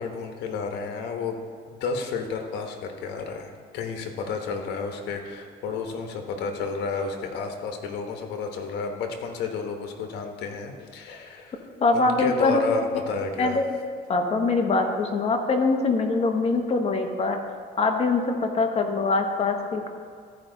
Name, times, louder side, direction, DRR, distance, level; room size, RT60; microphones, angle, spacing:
voice 1, 0.0-1.4 1.7-13.6, left 4 dB, 80° left, 4 dB, 1.2 m, -31 dB
voice 2, 11.8-12.6 12.9-13.1 13.4-13.7 14.1-17.4 17.8-19.9, left 3 dB, 35° left, 4 dB, 1.1 m, -23 dB
13.5 x 5.0 x 3.9 m, 2.2 s
cardioid pair, 110°, 17 cm